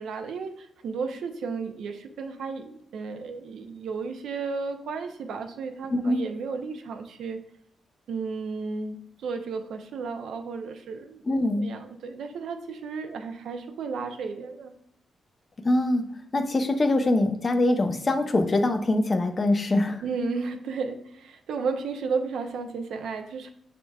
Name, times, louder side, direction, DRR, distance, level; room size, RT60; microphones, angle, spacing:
voice 1, 0.0-7.4 8.1-11.2 11.6-14.7 20.0-23.5, right 4 dB, 80° right, 6 dB, 0.5 m, -33 dB
voice 2, 5.9-6.2 11.3-11.6 15.6-16.1 16.3-20.0, left 2 dB, 40° left, 6 dB, 0.6 m, -23 dB
6.0 x 3.7 x 2.3 m, 0.68 s
supercardioid pair, 55°, 0 cm